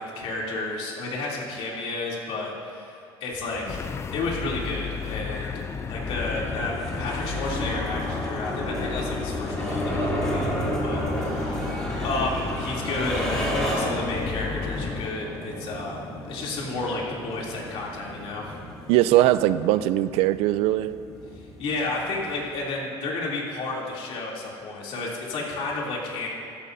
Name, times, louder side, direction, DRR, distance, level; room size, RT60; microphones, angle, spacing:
voice 1, 0.0-3.8 4.1-5.6 5.9-18.6 21.6-26.3, left 2 dB, 65° left, -4 dB, 3.0 m, -32 dB
sound 1, 3.3-22.6, equal, 5° left, 3.0 m, -32 dB
sound 2, 3.7-15.1, left 6 dB, 25° left, 0.4 m, -34 dB
voice 2, 18.9-20.9, right 14 dB, 75° right, 14 dB, 0.4 m, -20 dB
15.0 x 14.0 x 2.7 m, 2.4 s
cardioid pair, 130°, 10 cm